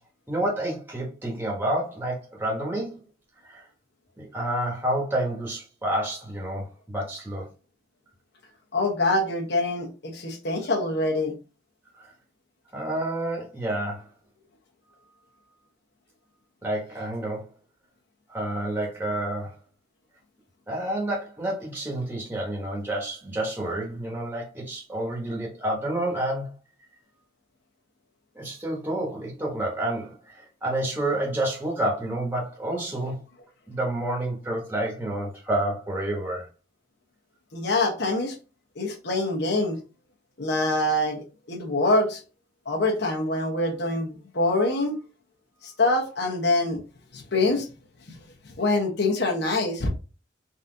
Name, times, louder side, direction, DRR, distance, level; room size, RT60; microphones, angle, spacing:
voice 1, 0.3-3.0 3.4-3.6 4.2-7.5 11.9-12.1 12.7-14.1 16.6-17.5 18.3-19.6 20.7-26.5 28.3-33.2 33.7-36.5, right 1 dB, 10° right, 1.2 m, -29 dB
voice 2, 8.7-11.3 37.5-38.4 38.8-39.8 40.4-42.2 42.7-44.9 45.6-46.8 47.1-47.7 48.4-49.9, left 2 dB, 60° left, 1.1 m, -25 dB
4.1 x 2.8 x 3.9 m
head